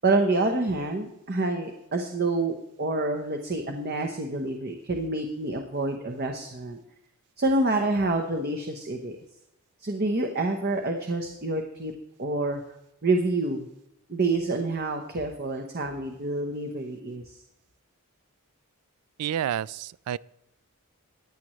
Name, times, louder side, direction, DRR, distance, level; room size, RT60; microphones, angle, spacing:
voice 1, 0.0-6.8 7.4-9.2 9.8-11.9 12.2-12.6 13.0-13.7 14.1-17.3, right 2 dB, 45° right, 3 dB, 0.9 m, -27 dB
voice 2, 19.2-20.2, right 10 dB, 85° right, 19 dB, 0.3 m, -29 dB
15.0 x 9.9 x 3.1 m, 0.85 s
head